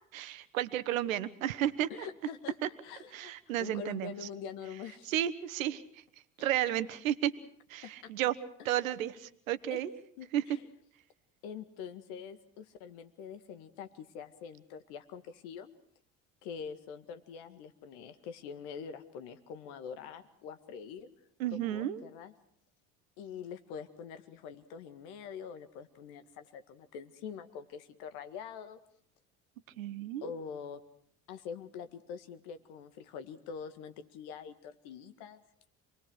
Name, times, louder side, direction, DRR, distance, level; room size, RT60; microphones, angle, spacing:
voice 1, 0.1-1.9 3.1-4.1 5.1-5.8 6.4-7.3 7.7-8.4 8.6-9.9 10.3-10.4 21.4-22.0 29.8-30.3, right 12 dB, 75° right, 13 dB, 1.2 m, -32 dB
voice 2, 1.9-2.6 2.8-3.3 3.6-5.1 7.8-8.1 9.7-9.8 10.2-10.7 11.4-15.7 16.4-21.1 21.5-22.3 23.2-28.8 30.2-30.8 31.3-35.4, left 7 dB, 65° left, 10 dB, 2.0 m, -45 dB
27.5 x 20.0 x 6.4 m, 0.65 s
hypercardioid pair, 60°, 40 cm